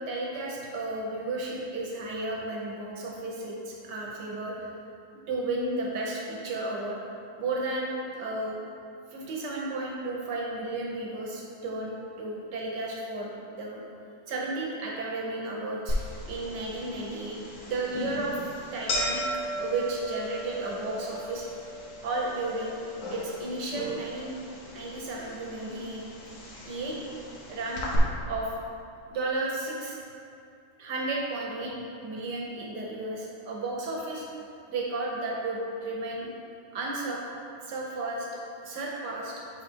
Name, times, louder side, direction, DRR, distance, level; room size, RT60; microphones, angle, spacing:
voice 1, 0.0-4.7 5.3-7.0 7.4-8.6 9.1-13.3 13.6-13.8 14.3-16.0 16.3-17.4 17.6-18.4 18.7-21.5 22.0-22.8 23.1-24.4 24.7-26.0 26.7-27.0 27.5-27.8 28.3-28.5 29.1-30.0 30.8-34.3 34.7-36.3 36.7-37.2 37.6-38.3 38.6-39.3, right 2 dB, 65° right, -3 dB, 1.3 m, -33 dB
sound 1, 15.9-28.0, equal, 50° left, 1.1 m, -37 dB
5.2 x 4.0 x 4.4 m, 2.6 s
omnidirectional pair, 2.2 m